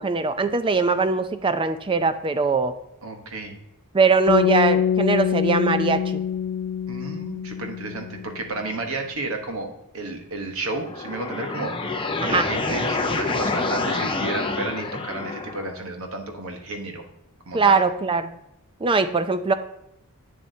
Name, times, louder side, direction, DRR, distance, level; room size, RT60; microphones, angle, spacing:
voice 1, 0.0-2.7 3.9-6.2 12.2-12.5 17.5-18.3 18.8-19.5, right 4 dB, 25° right, 11 dB, 0.4 m, -21 dB
voice 2, 3.0-3.5 6.9-17.0 17.5-17.8, right 2 dB, 65° right, 5 dB, 1.1 m, -32 dB
sound 1, 4.3-8.5, left 8 dB, 80° left, 0.6 m, -24 dB
sound 2, 10.8-15.7, left 3 dB, 25° left, 0.6 m, -27 dB
8.5 x 7.4 x 2.7 m, 0.84 s
head